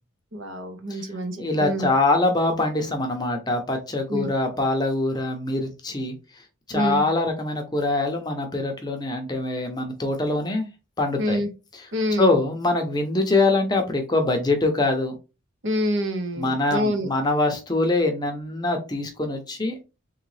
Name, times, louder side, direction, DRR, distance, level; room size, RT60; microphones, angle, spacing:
voice 1, 0.3-1.9 4.1-4.3 6.7-7.1 11.2-11.5 11.9-12.3 15.6-17.1, equal, 60° right, 6 dB, 0.8 m, -26 dB
voice 2, 1.4-6.1 6.7-10.7 11.0-11.4 12.2-15.1 16.4-19.8, left 2 dB, 20° left, 4 dB, 0.7 m, -24 dB
3.7 x 3.1 x 3.2 m, 0.29 s
head